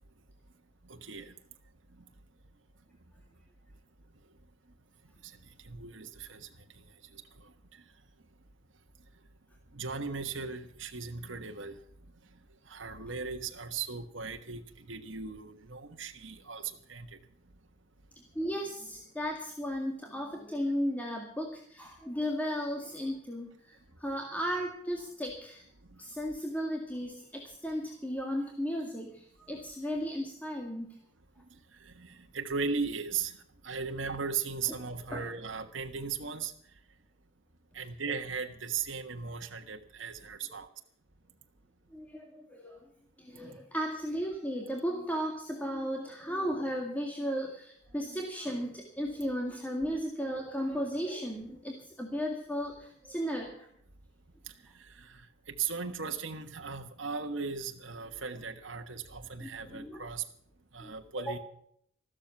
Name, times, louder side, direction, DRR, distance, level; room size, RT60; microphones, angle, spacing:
voice 1, 0.9-1.3 5.2-5.3 5.6-6.5 7.1-7.2 9.7-11.8 12.7-17.1 31.8-33.4 33.6-36.5 37.7-40.7 54.7-60.2 60.7-61.4, right 5 dB, 65° right, 4 dB, 1.4 m, -37 dB
voice 2, 18.4-25.7 26.0-30.9 35.1-35.2 41.9-42.8 43.2-53.7 59.4-60.1 60.8-60.9 61.2-61.4, equal, 10° left, 1 dB, 2.0 m, -35 dB
14.5 x 13.0 x 5.9 m, 0.66 s
head